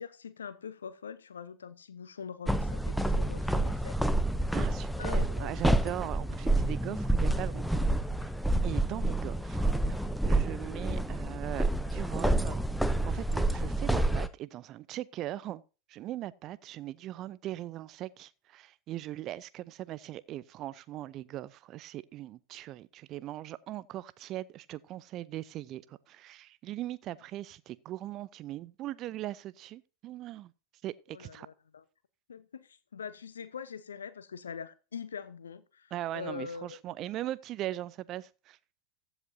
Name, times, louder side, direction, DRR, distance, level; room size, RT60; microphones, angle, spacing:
voice 1, 0.0-4.0 5.0-5.6 31.1-31.8 32.3-36.8, left 7 dB, 70° left, 0.9 m, -43 dB
sound 1, 2.5-14.3, right 1 dB, ahead, 0.7 m, -28 dB
voice 2, 4.5-7.8 8.6-15.6 15.9-30.5 30.8-31.5 35.9-38.6, right 14 dB, 35° right, 0.6 m, -40 dB
15.0 x 8.1 x 2.7 m
figure-of-eight pair, 90°, 0 cm